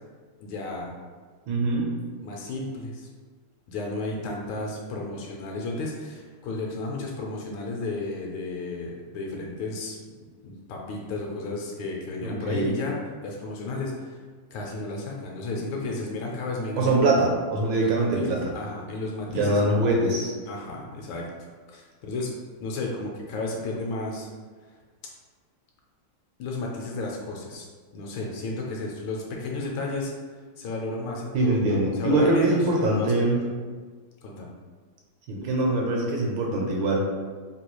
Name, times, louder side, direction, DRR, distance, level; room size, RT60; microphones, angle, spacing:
voice 1, 0.4-0.9 2.2-3.1 3.7-10.0 10.4-14.2 14.5-17.0 17.8-19.8 20.5-21.3 21.7-22.3 22.6-24.3 26.4-27.7 27.9-30.1 30.6-33.3 34.2-34.5, left 2 dB, 75° left, -1 dB, 1.3 m, -33 dB
voice 2, 1.5-1.9 12.2-12.8 16.8-18.4 19.3-20.3 31.3-33.4 35.3-37.1, right 2 dB, 75° right, -2 dB, 1.3 m, -23 dB
3.4 x 2.3 x 3.0 m, 1.5 s
omnidirectional pair, 2.3 m